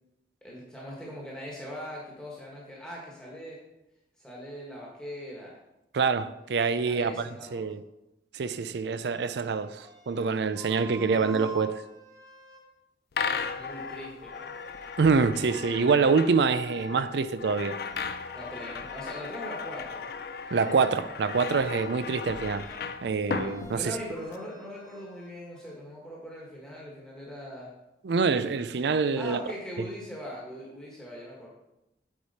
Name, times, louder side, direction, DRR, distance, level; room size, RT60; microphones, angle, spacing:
voice 1, 0.4-3.6 4.2-5.6 6.8-7.6 11.0-11.3 13.3-14.6 18.3-20.1 23.7-27.7 29.2-31.5, equal, 5° left, 1.4 m, -41 dB
voice 2, 5.9-7.8 8.3-11.8 15.0-17.8 20.5-22.7 23.0-24.0 28.0-29.4, right 5 dB, 70° right, 0.4 m, -26 dB
sound 1, 9.1-12.6 13.2-14.0 14.3-15.0 15.3-16.0 16.4-16.9 17.4-18.6 18.8-19.1 19.4-20.0 20.4-21.0 21.3-21.9 22.3-22.9 23.2-23.8 24.1-25.8, right 2 dB, 20° right, 0.9 m, -49 dB
sound 2, 13.1-24.4, left 5 dB, 55° left, 0.4 m, -36 dB
8.3 x 4.9 x 4.1 m
head